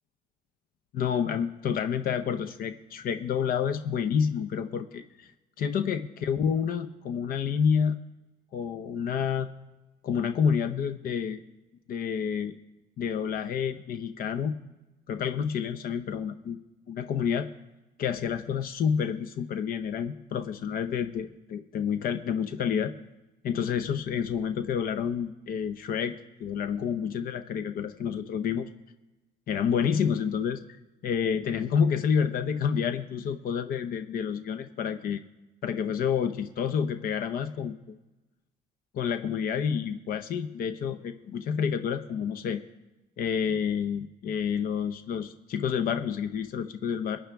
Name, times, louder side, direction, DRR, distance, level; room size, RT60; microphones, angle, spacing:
voice 1, 0.9-5.3 5.6-8.0 8.5-9.5 10.0-11.4 11.9-12.5 13.0-14.6 15.1-16.6 16.9-17.5 18.0-22.9 23.4-28.7 29.5-30.6 31.0-35.2 35.6-37.7 38.9-42.6 43.2-47.2, left 7 dB, 60° left, 10 dB, 0.7 m, -29 dB
21.0 x 9.2 x 3.4 m, 1.1 s
cardioid pair, 110°, 17 cm